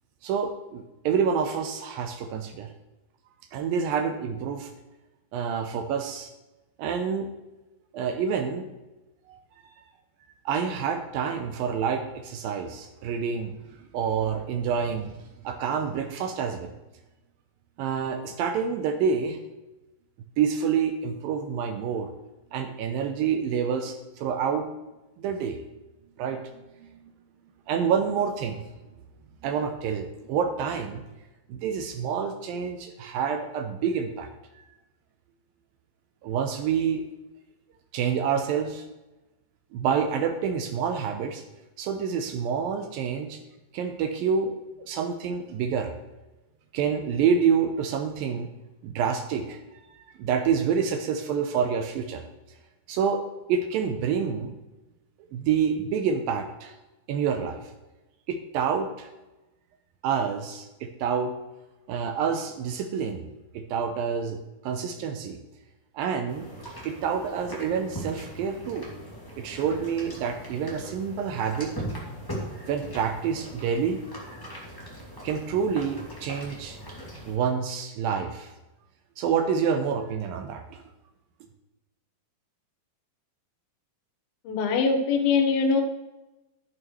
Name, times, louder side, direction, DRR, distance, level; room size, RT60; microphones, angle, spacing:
voice 1, 0.2-2.7 3.5-4.7 5.3-6.3 6.8-7.3 7.9-8.7 9.3-9.4 10.5-15.1 15.4-16.7 17.8-19.4 20.4-22.1 22.5-24.7 25.2-25.6 26.2-26.4 26.8-26.9 27.7-28.6 29.4-31.1 31.5-34.3 34.6-34.7 36.2-37.1 37.9-38.9 39.7-41.4 41.8-43.4 43.7-45.9 46.7-48.5 48.8-49.6 49.9-52.3 52.9-53.2 53.5-54.6 55.3-56.7 57.1-57.6 58.3-59.1 60.0-61.3 61.9-65.4 65.9-66.5 66.9-68.9 69.4-71.7 72.7-74.0 75.2-76.8 77.3-78.5 79.2-80.8, right 7 dB, 80° right, 6 dB, 2.3 m, -28 dB
sound 1, 66.3-77.4, right 1 dB, 10° left, 1.3 m, -40 dB
voice 2, 84.5-85.8, left 5 dB, 75° left, 4 dB, 2.8 m, -22 dB
11.5 x 11.0 x 3.1 m, 1.0 s
omnidirectional pair, 4.5 m